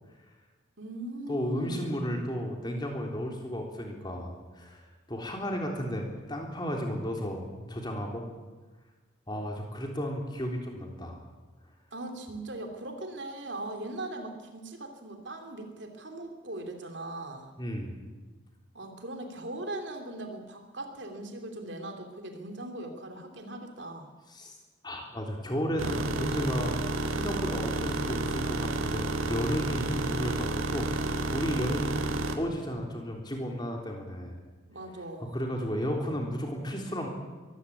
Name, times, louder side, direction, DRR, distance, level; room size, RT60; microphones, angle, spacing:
voice 1, 0.8-2.0 11.9-17.5 18.7-24.1 34.7-35.3, right 2 dB, 60° right, 4 dB, 3.1 m, -40 dB
voice 2, 1.3-8.2 9.3-11.2 17.6-18.0 24.3-24.6 24.8-31.9 32.3-34.4 35.2-37.1, equal, 20° left, 1 dB, 3.6 m, -33 dB
sound 1, 25.8-32.4, right 2 dB, 90° right, 2.0 m, -31 dB
23.0 x 15.5 x 8.5 m, 1.3 s
head